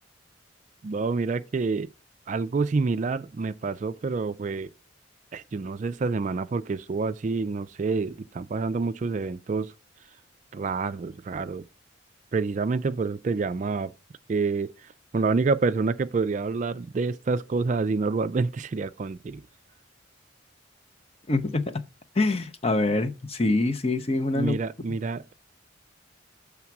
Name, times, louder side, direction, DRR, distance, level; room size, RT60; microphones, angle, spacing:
voice 1, 0.8-1.9 2.3-4.7 5.3-9.7 10.5-11.6 12.3-13.9 14.3-14.7 15.1-19.4 24.3-25.3, right 4 dB, 40° right, 0.3 m, -27 dB
voice 2, 21.3-21.8 22.2-24.6, left 2 dB, 30° left, 0.7 m, -25 dB
7.2 x 3.5 x 5.9 m
head